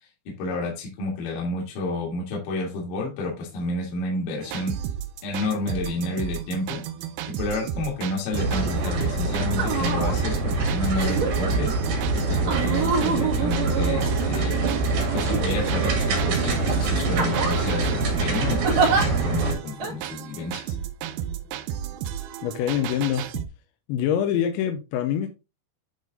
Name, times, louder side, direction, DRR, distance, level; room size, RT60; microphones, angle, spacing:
voice 1, 0.4-4.7 5.2-6.8 7.3-11.7 12.1-14.6 15.1-20.7, left 2 dB, 55° left, 3.2 m, -30 dB
sound 1, 4.4-23.5, right 10 dB, 85° right, 2.2 m, -33 dB
sound 2, 8.3-19.5, right 3 dB, 70° right, 4.5 m, -25 dB
sound 3, 8.8-9.0 9.5-10.2 10.9-11.5 12.5-14.5 15.3-16.0 16.5-16.7 17.1-17.7 18.6-19.0 19.8-19.9, right 5 dB, 50° right, 2.6 m, -27 dB
voice 2, 22.4-23.5 23.9-25.3, left 9 dB, 85° left, 3.1 m, -25 dB
11.0 x 3.8 x 3.8 m
omnidirectional pair, 5.2 m